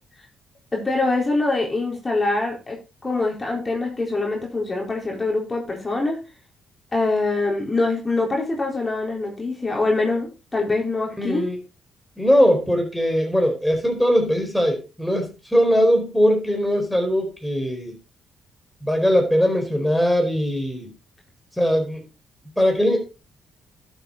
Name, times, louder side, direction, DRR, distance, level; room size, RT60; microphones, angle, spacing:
voice 1, 0.7-2.8 3.0-6.2 6.9-11.4, left 2 dB, 25° left, -1 dB, 4.0 m, -24 dB
voice 2, 11.2-11.6 12.2-17.9 18.8-20.9 21.6-22.0 22.6-23.0, equal, ahead, 2 dB, 4.6 m, -20 dB
11.5 x 7.5 x 3.9 m, 0.29 s
supercardioid pair, 60°, 0 cm